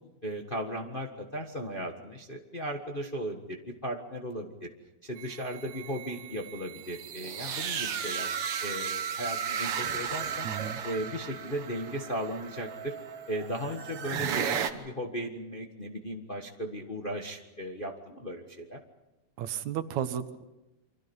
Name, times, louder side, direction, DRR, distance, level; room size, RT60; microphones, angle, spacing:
voice 1, 0.2-4.7 5.0-8.3 8.6-10.5 10.8-13.0 13.3-18.8, equal, 25° left, 2 dB, 1.1 m, -36 dB
sound 1, 5.2-14.7, right 7 dB, 55° right, 2.0 m, -35 dB
voice 2, 10.4-10.8 19.4-20.5, right 10 dB, 75° right, 11 dB, 2.4 m, -33 dB
29.0 x 25.0 x 5.5 m, 0.98 s
omnidirectional pair, 3.4 m